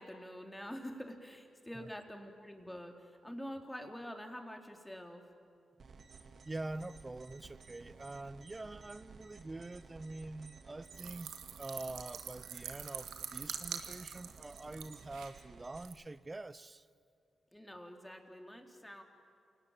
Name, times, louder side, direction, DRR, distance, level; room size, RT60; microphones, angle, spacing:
voice 1, 0.0-5.2 17.5-19.0, equal, 10° left, 3 dB, 3.8 m, -46 dB
sound 1, 5.8-15.8, right 4 dB, 60° right, 2.4 m, -56 dB
voice 2, 6.4-11.3 11.6-16.9, right 2 dB, 30° right, 16 dB, 0.8 m, -45 dB
sound 2, 11.0-15.3 15.8-15.9, right 8 dB, 80° right, 1.8 m, -45 dB
28.5 x 18.0 x 9.0 m, 2.4 s
supercardioid pair, 45°, 0 cm